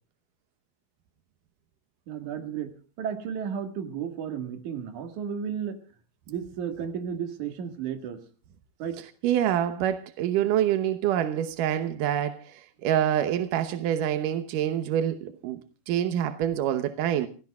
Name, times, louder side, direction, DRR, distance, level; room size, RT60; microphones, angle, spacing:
voice 1, 2.1-5.8 6.3-8.2 8.8-9.0, right 8 dB, 55° right, 2.6 m, -33 dB
voice 2, 9.2-17.3, right 10 dB, 80° right, 1.9 m, -26 dB
29.5 x 16.0 x 2.3 m
omnidirectional pair, 5.2 m